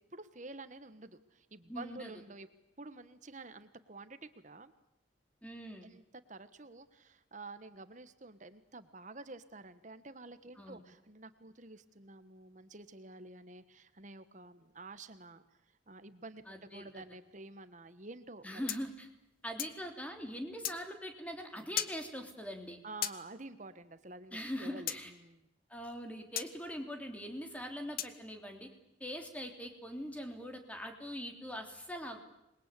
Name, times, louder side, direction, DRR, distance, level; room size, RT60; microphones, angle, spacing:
voice 1, 0.1-2.5 2.8-4.7 5.8-6.0 6.3-15.4 15.9-18.7 22.8-25.4, right 2 dB, 40° right, 12 dB, 1.3 m, -50 dB
voice 2, 1.7-2.1 5.4-5.9 10.6-10.8 16.5-17.0 18.4-19.1 19.4-22.8 24.3-25.1 25.7-28.7 29.0-32.3, equal, 5° left, 4 dB, 3.4 m, -42 dB
sound 1, 18.7-19.8 20.6-20.8 21.8-22.0 23.0-23.2 24.9-25.0 26.4-26.5 28.0-28.2, left 11 dB, 50° left, 1.2 m, -36 dB
27.5 x 22.0 x 8.4 m, 0.85 s
head